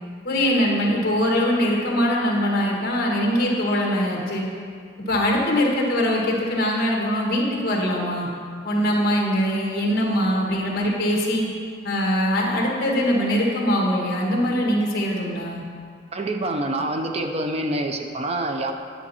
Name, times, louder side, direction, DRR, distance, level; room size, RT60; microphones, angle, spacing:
voice 1, 0.2-4.4 5.0-8.3 8.6-11.5 11.8-15.6, equal, 50° left, -2 dB, 1.6 m, -22 dB
voice 2, 16.1-18.7, right 1 dB, 30° right, 5 dB, 0.5 m, -26 dB
9.9 x 7.1 x 4.3 m, 2.1 s
head